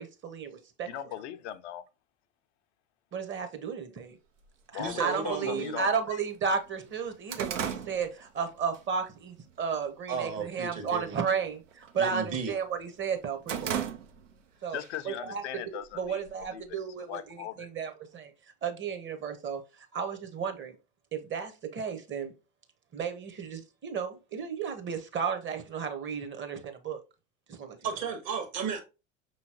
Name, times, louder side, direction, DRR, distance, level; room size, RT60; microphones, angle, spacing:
voice 1, 0.0-0.9 3.1-4.2 4.7-13.7 14.6-15.4 16.0-18.3 18.6-20.8 21.1-22.3 22.9-27.0 27.5-27.8, right 6 dB, 30° right, 1.0 m, -33 dB
voice 2, 0.9-1.8 4.7-5.9 14.7-16.6 17.1-17.7, left 11 dB, 65° left, 0.6 m, -39 dB
sound 1, 4.4-4.5 5.4-5.5 6.0-6.1 6.4-8.8 9.2-9.5 10.0-10.5 10.8-11.1 11.4-12.6 13.0-14.5 14.8-14.9 15.8-16.7, right 9 dB, 75° right, 0.7 m, -36 dB
voice 3, 4.8-5.8 10.1-11.2 12.0-12.5 13.6-13.9 27.8-28.8, right 5 dB, 50° right, 1.5 m, -34 dB
5.6 x 3.1 x 2.8 m
figure-of-eight pair, 75°, 38 cm